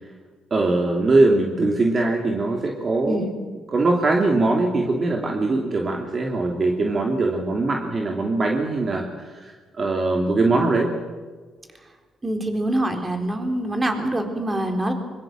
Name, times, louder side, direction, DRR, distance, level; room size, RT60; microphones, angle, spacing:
voice 1, 0.5-3.2 3.7-9.0 9.4-10.9, right 2 dB, 40° right, 1 dB, 3.0 m, -21 dB
voice 2, 12.2-14.9, right 1 dB, 25° right, 5 dB, 4.0 m, -25 dB
24.0 x 23.0 x 7.7 m, 1.4 s
cardioid pair, 90°, 0 cm